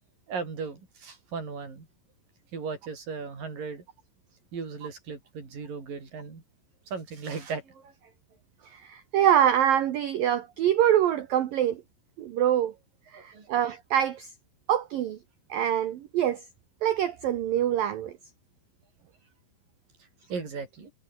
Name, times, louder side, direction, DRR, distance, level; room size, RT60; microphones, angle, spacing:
voice 1, 0.3-1.9 2.5-3.8 4.5-6.4 6.9-8.1 13.1-13.5 20.3-20.9, right 5 dB, 40° right, 7.1 m, -37 dB
voice 2, 8.7-11.8 12.2-12.7 13.1-14.3 14.7-15.2 15.5-16.4 16.8-18.1, right 10 dB, 85° right, 2.0 m, -25 dB
omnidirectional pair, 5.9 m